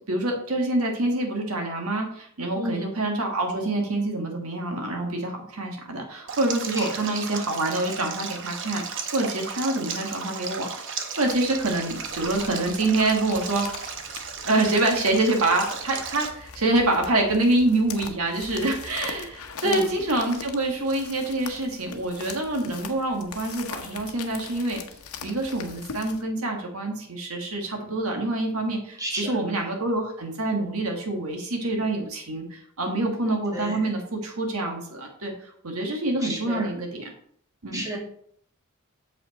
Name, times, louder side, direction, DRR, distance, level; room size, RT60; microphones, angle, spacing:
voice 1, 0.1-13.7 14.4-24.8 25.2-35.3 35.6-37.1 37.6-37.8, right 2 dB, 80° right, 2 dB, 1.5 m, -26 dB
Stream, 6.3-16.3, right 6 dB, 60° right, 0.9 m, -35 dB
sound 1, 11.2-26.2, left 6 dB, 90° left, 0.9 m, -42 dB
voice 2, 29.0-29.4 33.5-33.8 36.2-36.7 37.7-38.0, right 1 dB, 15° right, -2 dB, 1.9 m, -32 dB
7.2 x 5.4 x 4.0 m, 0.64 s
head